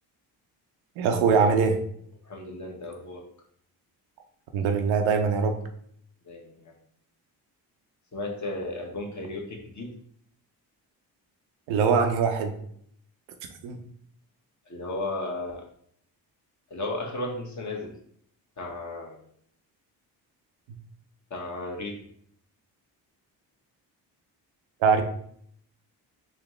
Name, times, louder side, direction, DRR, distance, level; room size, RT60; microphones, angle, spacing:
voice 1, 1.0-1.8 4.5-5.6 11.7-12.5 13.6-13.8 24.8-25.0, right 5 dB, 90° right, 5 dB, 0.7 m, -22 dB
voice 2, 2.2-3.2 6.3-6.7 8.1-9.9 14.7-15.7 16.7-17.9 18.6-19.2 21.3-22.0, left 2 dB, 40° left, 1 dB, 1.2 m, -34 dB
4.1 x 2.7 x 3.1 m, 0.65 s
supercardioid pair, 60°, 45 cm